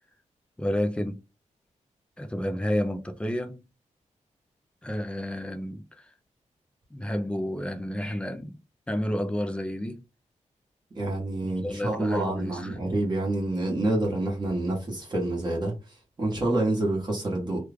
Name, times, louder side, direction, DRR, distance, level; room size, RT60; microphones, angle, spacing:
voice 1, 0.6-1.2 2.2-3.6 4.8-6.1 6.9-8.6 8.9-10.0 11.4-12.8, left 1 dB, 10° left, 0.4 m, -30 dB
voice 2, 10.9-17.6, right 2 dB, 35° right, 1.2 m, -28 dB
3.1 x 2.4 x 3.4 m
wide cardioid pair, 165°, 13 cm